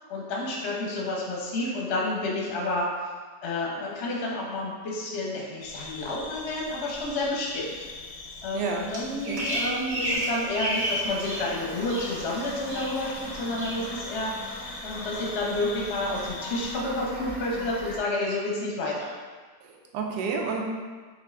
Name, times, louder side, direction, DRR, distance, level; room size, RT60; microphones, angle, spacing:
voice 1, 0.1-2.9 3.4-7.7 8.4-19.1, left 2 dB, 55° left, -3 dB, 0.8 m, -30 dB
sound 1, 5.6-16.7, left 3 dB, 85° left, 1.3 m, -43 dB
voice 2, 8.5-8.9 9.3-9.4 19.6-20.6, right 5 dB, 75° right, 0 dB, 1.2 m, -30 dB
Bird vocalization bird call bird song, 8.9-11.5 11.8-12.4 12.7-13.2 13.6-13.8, right 1 dB, 50° right, 1.4 m, -31 dB
Toilet flush / Fill (with liquid), 11.0-18.0, left 1 dB, 20° left, 0.6 m, -41 dB
4.6 x 2.5 x 3.3 m, 1.5 s
omnidirectional pair, 2.0 m